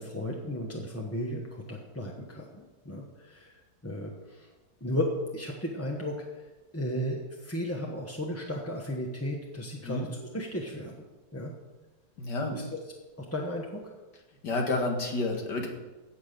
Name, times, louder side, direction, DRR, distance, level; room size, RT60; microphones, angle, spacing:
voice 1, 0.0-3.5 3.8-4.5 4.8-6.4 6.7-11.1 11.3-11.5 12.5-12.8 13.2-13.8, left 1 dB, 10° left, -1 dB, 0.8 m, -34 dB
voice 2, 12.2-12.6 14.4-15.7, left 2 dB, 70° left, 1 dB, 2.4 m, -30 dB
16.0 x 5.9 x 6.7 m, 1.2 s
omnidirectional pair, 1.9 m